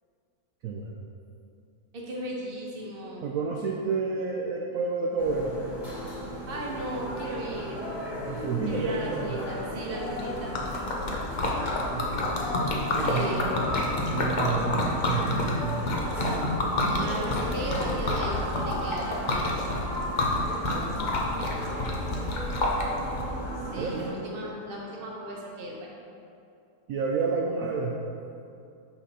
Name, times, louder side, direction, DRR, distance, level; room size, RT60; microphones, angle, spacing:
voice 1, 0.6-1.0 3.2-5.6 8.3-9.4 11.9-12.2 12.9-13.3 14.1-15.8 23.8-24.1 26.9-27.9, right 4 dB, 70° right, 0 dB, 0.9 m, -30 dB
voice 2, 1.9-3.2 6.5-7.8 8.7-10.5 13.0-13.5 16.9-19.6 23.7-25.9, right 1 dB, 40° right, -3 dB, 1.0 m, -36 dB
sound 1, 5.2-24.1, equal, 35° left, 1.8 m, -35 dB
Liquid, 10.0-23.2, left 2 dB, 60° left, 0.4 m, -29 dB
5.8 x 5.6 x 4.1 m, 2.6 s
omnidirectional pair, 1.9 m